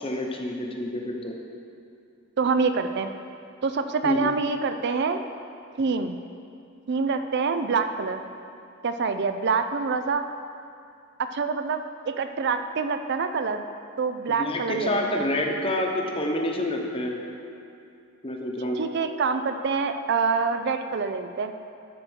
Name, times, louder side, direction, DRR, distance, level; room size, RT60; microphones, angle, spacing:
voice 1, 0.0-1.3 4.0-4.3 14.3-17.2 18.2-18.8, left 1 dB, 30° left, 1 dB, 0.9 m, -28 dB
voice 2, 2.4-3.1 3.6-5.2 5.8-6.2 6.9-8.2 8.8-10.2 11.2-13.7 14.0-15.3 18.8-21.5, right 5 dB, 55° right, 8 dB, 0.4 m, -26 dB
12.5 x 4.4 x 6.2 m, 2.5 s
head